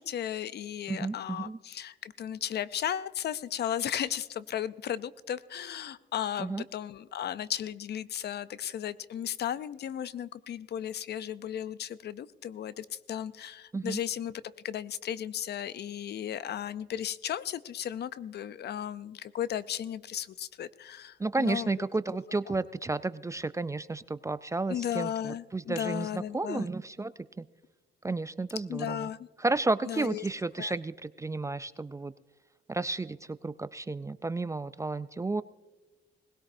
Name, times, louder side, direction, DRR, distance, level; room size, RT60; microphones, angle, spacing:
voice 1, 0.0-21.7 24.7-26.7 28.7-29.3 29.8-30.3 30.6-30.7, left 10 dB, 55° left, 16 dB, 0.5 m, -35 dB
voice 2, 0.9-1.6 6.4-6.6 13.7-14.0 21.2-27.1 27.4-27.5 28.0-29.1 29.4-32.1 32.7-33.2 33.4-35.4, right 3 dB, 15° right, 15 dB, 0.3 m, -32 dB
19.5 x 17.0 x 2.6 m, 1.2 s
cardioid pair, 90°, 20 cm